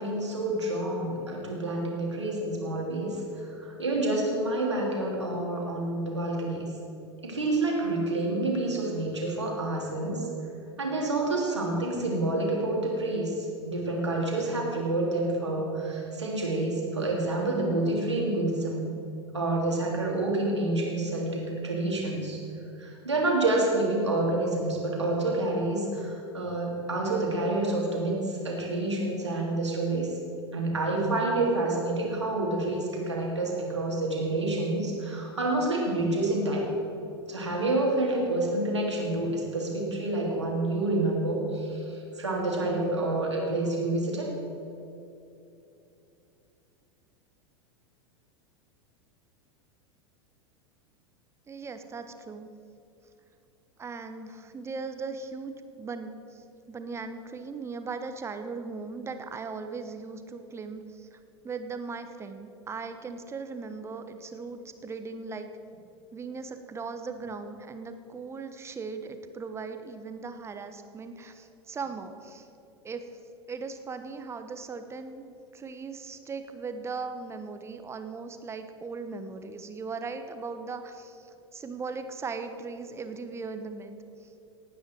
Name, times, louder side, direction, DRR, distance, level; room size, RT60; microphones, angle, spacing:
voice 1, 0.0-6.7 7.2-10.3 10.8-18.9 19.3-22.4 22.8-30.1 30.5-36.6 37.3-44.3, right 2 dB, 80° right, -2 dB, 3.1 m, -28 dB
voice 2, 51.5-52.5 53.8-61.2 61.4-65.5 66.1-72.5 72.8-73.1 73.5-83.9 84.2-84.3, right 4 dB, 20° right, 8 dB, 1.0 m, -38 dB
18.0 x 9.3 x 4.7 m, 2.8 s
figure-of-eight pair, 85°, 14 cm